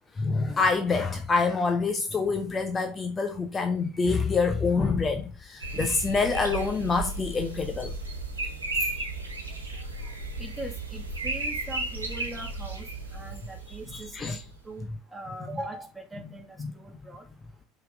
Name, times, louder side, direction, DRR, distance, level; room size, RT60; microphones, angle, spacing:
voice 1, 0.2-7.9 13.9-14.4, left 4 dB, 25° left, 0.9 m, -26 dB
sound 1, 5.6-14.4, right 2 dB, 80° right, 1.3 m, -34 dB
voice 2, 10.4-17.3, right 1 dB, 10° right, 2.2 m, -41 dB
5.7 x 5.4 x 3.6 m
figure-of-eight pair, 65°, 0 cm